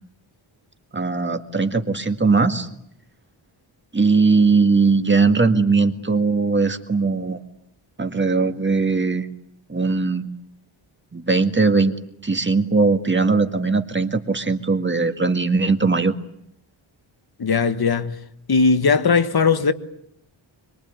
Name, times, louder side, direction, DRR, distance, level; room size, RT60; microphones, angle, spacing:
voice 1, 0.9-2.7 3.9-7.4 8.0-9.3 9.7-10.3 11.1-12.0 12.2-16.1, right 4 dB, 25° right, 1.9 m, -19 dB
voice 2, 17.4-18.1 18.5-19.7, left 5 dB, 50° left, 1.5 m, -18 dB
25.5 x 23.5 x 9.4 m
wide cardioid pair, 140°, 49 cm